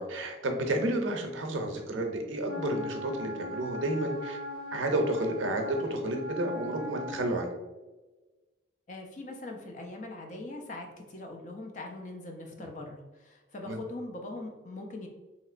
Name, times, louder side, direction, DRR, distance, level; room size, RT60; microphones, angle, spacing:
voice 1, 0.0-4.4 4.7-7.5 13.6-13.8, right 1 dB, 85° right, 3 dB, 0.6 m, -31 dB
Wind instrument woodwind instrument, 2.4-7.2, left 2 dB, 60° left, 0.9 m, -39 dB
voice 2, 8.9-15.1, left 2 dB, 40° left, 2 dB, 0.4 m, -41 dB
3.1 x 2.9 x 2.4 m, 1.2 s
head